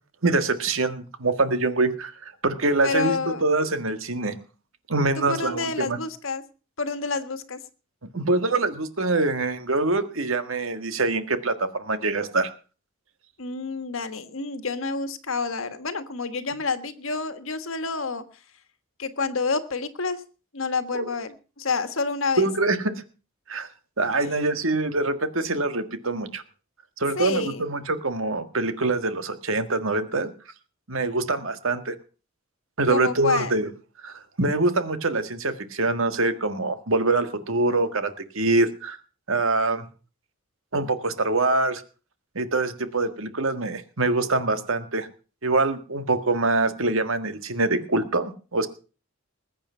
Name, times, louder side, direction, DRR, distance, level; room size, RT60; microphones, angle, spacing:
voice 1, 0.2-4.4 4.9-6.0 8.1-12.5 20.9-21.1 22.4-23.0 23.5-23.7 24.0-26.4 27.0-30.3 30.9-31.9 32.8-33.7 34.0-39.0 39.3-39.9 40.7-41.8 42.4-45.1 45.4-48.7, right 2 dB, 75° right, 10 dB, 1.7 m, -24 dB
voice 2, 2.8-3.5 5.2-6.4 6.8-7.6 13.4-18.2 19.0-20.2 20.5-22.5 24.2-24.4 27.1-27.7 32.9-33.6, left 4 dB, 70° left, 10 dB, 1.6 m, -28 dB
20.5 x 8.8 x 5.6 m, 0.36 s
head